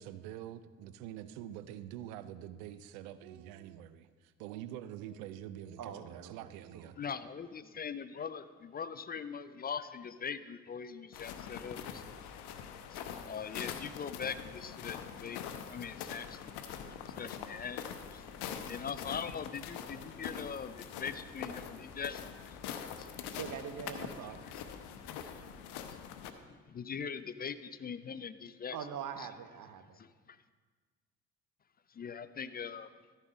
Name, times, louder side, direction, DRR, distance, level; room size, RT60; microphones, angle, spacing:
voice 1, 0.0-7.0, right 11 dB, 75° right, 0.6 m, -46 dB
voice 2, 5.8-6.9 23.3-24.4 28.7-30.0, right 8 dB, 50° right, 0.9 m, -43 dB
voice 3, 7.0-12.3 12.9-15.4 15.7-17.9 18.1-18.2 18.7-22.6 23.0-23.2 24.4-24.5 24.9-25.7 26.5-28.8 29.2-29.3 30.0-30.4 31.9-32.9, left 6 dB, 25° left, 0.4 m, -42 dB
sound 1, 11.1-26.3, left 8 dB, 65° left, 0.8 m, -44 dB
13.0 x 5.5 x 5.1 m
hypercardioid pair, 45°, 43 cm